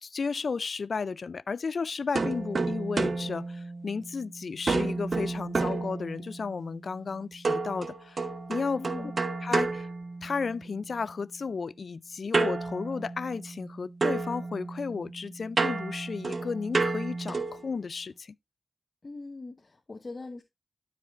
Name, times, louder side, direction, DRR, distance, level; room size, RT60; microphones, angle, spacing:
voice 1, 0.0-8.9 9.4-9.9 10.2-18.4, left 5 dB, 75° left, 0.3 m, -33 dB
sound 1, 2.2-4.2 4.7-6.5 7.4-10.7 12.3-13.7 14.0-17.7, right 3 dB, 65° right, 0.9 m, -31 dB
voice 2, 8.8-9.2 19.0-20.4, left 3 dB, 55° left, 1.0 m, -41 dB
12.5 x 5.0 x 2.4 m
cardioid pair, 40°, 0 cm